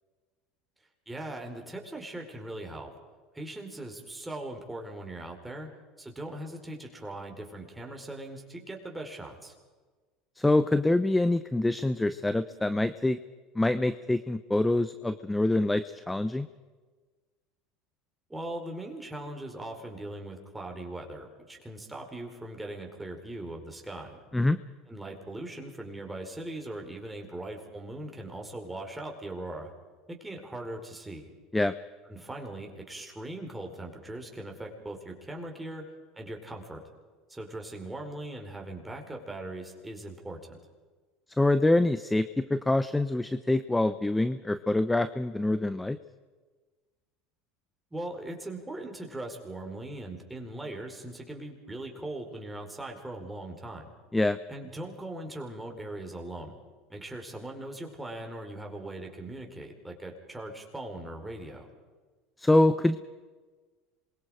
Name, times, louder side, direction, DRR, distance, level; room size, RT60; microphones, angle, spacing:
voice 1, 1.1-2.9 3.3-5.7 6.0-9.5 18.3-24.2 24.9-29.7 30.1-31.3 32.1-35.8 36.1-36.8 37.3-40.6 47.9-53.9 54.5-56.6 56.9-61.7, right 1 dB, 10° right, 2 dB, 4.8 m, -40 dB
voice 2, 10.4-13.2 13.5-16.5 24.3-24.6 31.5-31.7 41.4-46.0 54.1-54.4 62.4-63.0, left 2 dB, 10° left, 12 dB, 0.8 m, -25 dB
27.0 x 23.0 x 5.1 m, 1.4 s
supercardioid pair, 115°, 0 cm